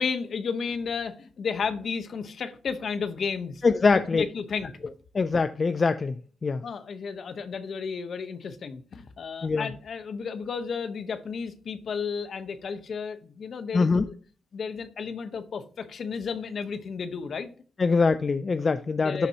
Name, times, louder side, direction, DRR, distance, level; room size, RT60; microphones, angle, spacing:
voice 1, 0.0-3.6 3.9-4.9 6.6-14.1 14.5-17.5 19.0-19.3, left 5 dB, 60° left, 10 dB, 0.9 m, -33 dB
voice 2, 3.6-4.3 5.1-6.1 6.4-6.6 9.4-9.7 13.7-14.0 17.8-19.3, left 4 dB, 40° left, 12 dB, 0.4 m, -23 dB
12.0 x 4.1 x 2.8 m, 0.42 s
cardioid pair, 85°, 0 cm